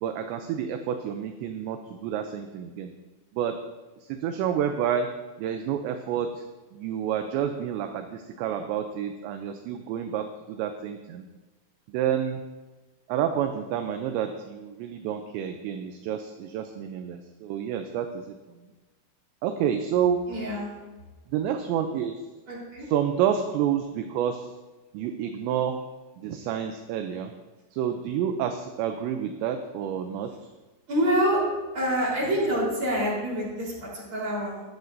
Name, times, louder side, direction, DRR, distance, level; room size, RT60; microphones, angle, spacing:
voice 1, 0.0-2.9 3.4-3.6 4.1-5.1 5.4-6.4 6.7-11.3 11.9-12.4 13.1-18.4 19.4-20.2 21.3-22.2 22.9-24.5 24.9-25.8 26.2-27.3 27.7-30.3, right 9 dB, 80° right, 6 dB, 2.7 m, -29 dB
voice 2, 20.3-20.7 22.5-22.9 30.9-31.4 31.7-34.6, equal, 30° right, -5 dB, 4.2 m, -26 dB
21.5 x 7.9 x 2.7 m, 1.2 s
omnidirectional pair, 5.5 m